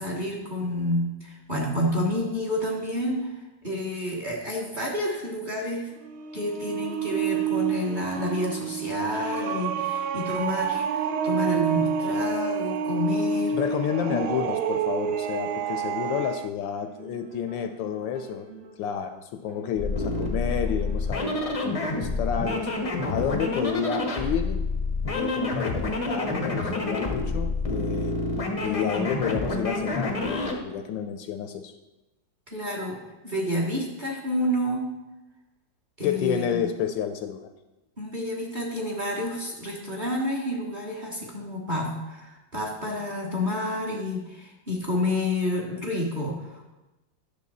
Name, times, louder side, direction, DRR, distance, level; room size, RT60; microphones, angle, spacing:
voice 1, 0.0-5.9 6.3-13.5 14.1-14.2 32.5-33.0 33.2-34.9 36.0-36.6 38.0-46.7, left 1 dB, 30° right, -2 dB, 1.2 m, -29 dB
sound 1, 6.0-16.5, right 6 dB, 85° right, 1.5 m, -28 dB
voice 2, 13.5-18.5 18.8-22.7 23.1-24.6 25.1-28.1 28.6-31.7 36.0-37.5, left 8 dB, 75° left, 8 dB, 1.2 m, -30 dB
sound 2, 16.8-19.2 19.5-21.9, right 5 dB, 50° right, 1.0 m, -47 dB
sound 3, 19.7-30.6, left 2 dB, 40° left, 0.5 m, -28 dB
10.0 x 6.7 x 4.1 m, 1.0 s
omnidirectional pair, 2.2 m